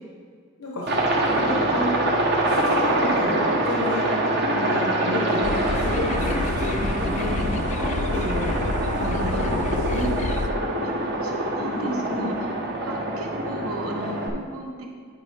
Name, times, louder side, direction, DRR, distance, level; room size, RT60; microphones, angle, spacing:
Aircraft, 0.9-14.3, right 1 dB, 50° right, 1.1 m, -25 dB
voice 1, 1.3-1.9 2.4-4.2 4.5-8.6 8.9-10.1 11.7-12.4, equal, 80° left, -3 dB, 1.1 m, -31 dB
sound 1, 5.4-10.5, left 3 dB, 35° left, 0.4 m, -29 dB
voice 2, 11.2-12.3 12.8-14.9, right 1 dB, 80° right, 0 dB, 1.2 m, -36 dB
11.0 x 5.1 x 3.4 m, 2.1 s
head